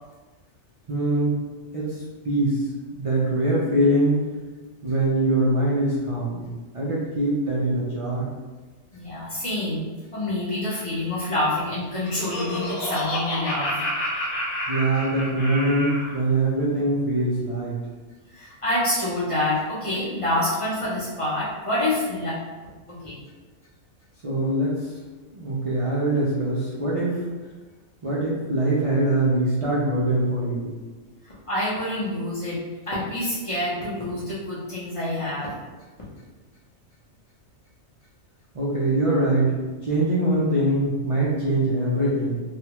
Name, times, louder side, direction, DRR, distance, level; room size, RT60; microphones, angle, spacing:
voice 1, 0.9-1.4 1.7-2.7 2.9-4.2 4.8-6.4 6.7-8.3 14.7-17.8 24.2-24.9 25.3-27.2 28.0-30.7 38.5-42.4, right 1 dB, 50° right, -7 dB, 0.4 m, -23 dB
voice 2, 8.9-13.8 18.3-22.4 22.9-23.2 31.2-35.5, left 1 dB, 30° left, -9 dB, 0.8 m, -27 dB
Laughter, 11.7-16.2, left 1 dB, 70° left, 1.3 m, -29 dB
3.3 x 2.3 x 2.9 m, 1.3 s
omnidirectional pair, 1.4 m